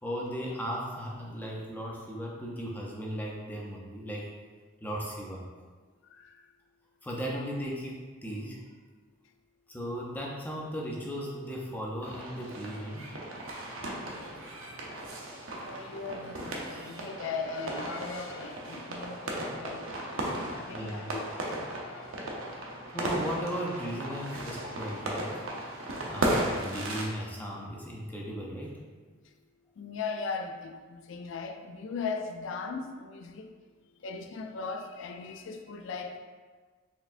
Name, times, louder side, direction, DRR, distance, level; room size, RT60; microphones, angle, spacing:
voice 1, 0.0-4.3 4.8-5.5 7.0-8.6 9.7-13.1 20.7-21.1 22.9-25.3 26.1-28.7, equal, 10° left, -3 dB, 0.5 m, -36 dB
sound 1, 12.0-27.0, right 1 dB, 85° right, 0.7 m, -36 dB
voice 2, 15.6-19.9 20.1-21.2 21.8-22.1 29.8-33.5 34.0-36.2, left 4 dB, 70° left, 6 dB, 0.3 m, -38 dB
4.4 x 3.3 x 2.5 m, 1.5 s
head